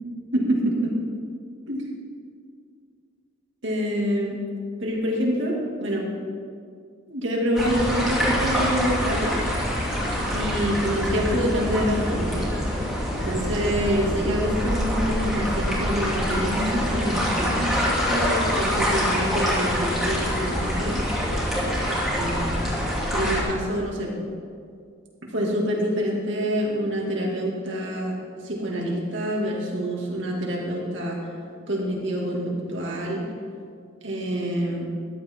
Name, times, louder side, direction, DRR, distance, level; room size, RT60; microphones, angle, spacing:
voice 1, 0.3-0.9 1.7-1.9 3.6-4.4 4.8-6.1 7.1-9.4 10.3-12.5 13.2-21.0 21.9-22.6 23.1-24.1 25.3-28.1 28.4-31.2 31.7-33.2 34.0-34.9, equal, 65° right, -2 dB, 2.4 m, -26 dB
sound 1, 7.5-23.4, equal, ahead, 2.6 m, -25 dB
14.5 x 11.0 x 3.8 m, 2.2 s
head